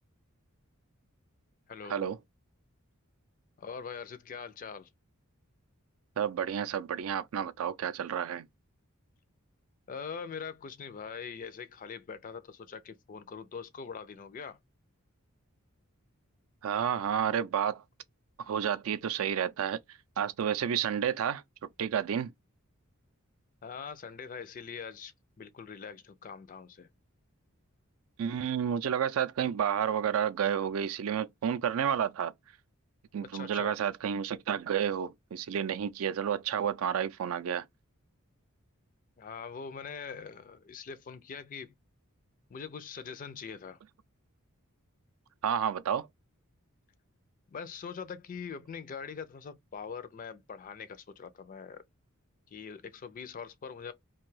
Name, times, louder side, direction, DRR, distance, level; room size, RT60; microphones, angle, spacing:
voice 1, 1.7-2.1 3.6-4.9 9.9-14.6 23.6-26.9 33.3-33.8 39.2-41.7 42.5-43.8 47.5-51.8 52.5-53.9, left 6 dB, 40° left, 0.4 m, -43 dB
voice 2, 6.2-8.5 16.6-17.8 18.5-19.8 20.2-21.4 21.8-22.3 28.2-32.3 33.1-37.7 45.4-46.1, right 8 dB, 70° right, 0.4 m, -30 dB
2.6 x 2.2 x 3.2 m
head